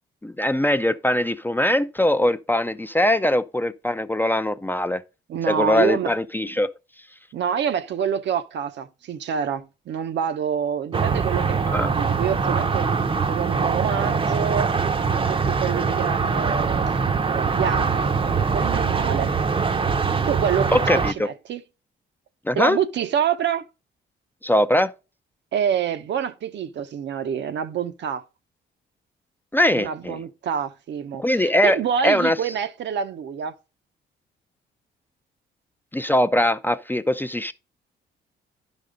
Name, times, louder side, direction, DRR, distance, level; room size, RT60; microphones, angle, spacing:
voice 1, 0.2-5.0 5.5-6.7 11.7-11.9 20.7-21.3 22.5-22.8 24.4-24.9 29.5-30.2 31.2-31.8 32.0-32.4 35.9-37.5, left 1 dB, 10° left, 0.4 m, -21 dB
voice 2, 5.3-6.1 7.3-12.9 13.3-14.8 15.1-17.0 17.3-19.3 20.3-21.6 22.5-23.7 25.5-28.2 29.7-33.5, right 8 dB, 65° right, 0.7 m, -27 dB
sound 1, 10.9-21.1, right 5 dB, 25° right, 0.7 m, -23 dB
11.0 x 5.3 x 3.8 m
cardioid pair, 90°, 20 cm